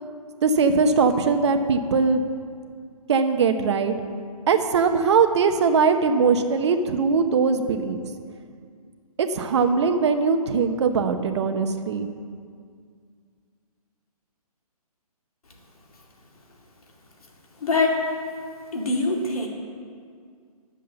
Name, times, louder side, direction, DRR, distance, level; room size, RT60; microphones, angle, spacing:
voice 1, 0.4-2.2 3.1-3.9 4.5-8.0 9.2-12.1, right 5 dB, 45° right, 7 dB, 0.9 m, -21 dB
voice 2, 17.6-18.0 18.7-19.5, left 3 dB, 65° left, 0 dB, 2.4 m, -23 dB
10.5 x 7.4 x 6.8 m, 2.1 s
figure-of-eight pair, 145°, 20 cm